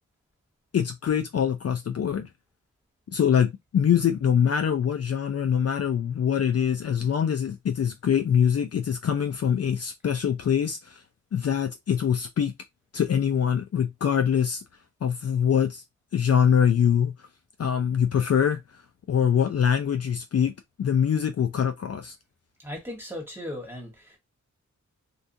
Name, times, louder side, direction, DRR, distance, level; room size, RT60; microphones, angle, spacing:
voice 1, 0.7-2.3 3.1-11.0 11.3-12.5 12.9-14.6 15.0-15.8 16.1-17.1 17.6-18.6 19.1-20.5 20.8-22.1, left 8 dB, 55° left, 0.4 m, -24 dB
voice 2, 22.6-24.2, left 1 dB, 10° right, 1.3 m, -37 dB
2.6 x 2.3 x 2.5 m
cardioid pair, 70°, 31 cm